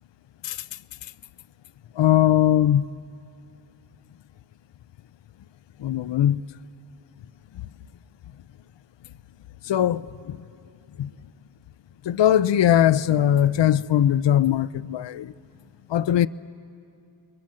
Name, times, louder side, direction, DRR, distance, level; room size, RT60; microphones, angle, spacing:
voice 1, 2.0-2.9 5.8-6.4 9.6-10.4 11.0-11.1 12.1-15.3 15.9-16.3, left 11 dB, 80° left, 0.5 m, -20 dB
29.0 x 22.5 x 7.6 m
cardioid pair, 50°, 43 cm